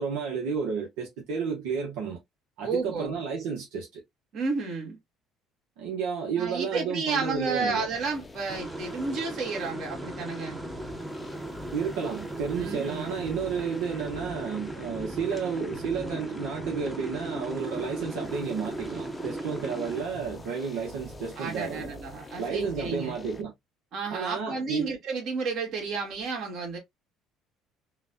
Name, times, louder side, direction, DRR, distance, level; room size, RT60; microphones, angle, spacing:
voice 1, 0.0-2.2 2.6-4.0 5.8-7.9 11.7-21.9 22.4-23.5 24.1-24.9, right 6 dB, 85° right, 0.9 m, -32 dB
voice 2, 2.6-3.2 4.3-5.0 6.4-10.6 12.5-13.1 21.4-23.1 23.9-26.8, right 4 dB, 60° right, 1.8 m, -32 dB
sound 1, 7.4-23.4, left 2 dB, 20° left, 0.6 m, -45 dB
sound 2, 8.5-20.0, right 2 dB, 10° right, 0.8 m, -38 dB
3.9 x 2.3 x 2.5 m
cardioid pair, 105°, 0 cm